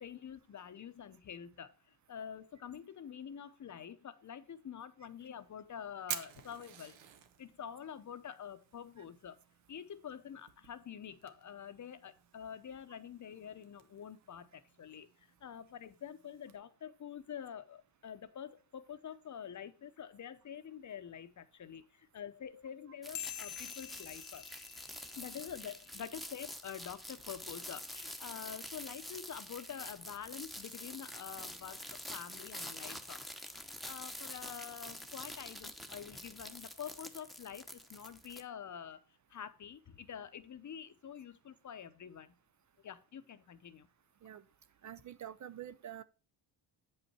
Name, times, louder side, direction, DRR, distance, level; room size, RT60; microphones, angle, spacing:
voice 1, 0.0-7.0 7.4-9.4 9.7-24.5 25.2-33.2 33.8-39.0 39.3-42.3 42.8-43.9, left 8 dB, 40° left, 0.8 m, -47 dB
Fire, 5.0-16.6, right 10 dB, 80° right, 1.1 m, -51 dB
sound 1, 23.0-38.4, equal, ahead, 0.9 m, -47 dB
sound 2, 23.1-26.0, left 15 dB, 80° left, 0.5 m, -47 dB
voice 2, 44.8-46.0, right 10 dB, 40° right, 0.4 m, -47 dB
8.3 x 5.5 x 4.2 m
cardioid pair, 105°, 45 cm